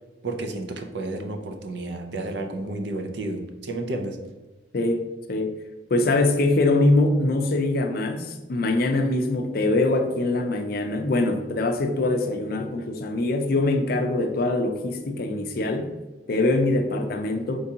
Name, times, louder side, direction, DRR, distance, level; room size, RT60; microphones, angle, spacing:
voice 1, 0.2-4.2, right 2 dB, 65° right, 5 dB, 0.5 m, -31 dB
voice 2, 5.9-15.9 16.3-17.6, left 2 dB, 50° left, 5 dB, 0.4 m, -23 dB
4.5 x 3.5 x 2.7 m, 1.1 s
head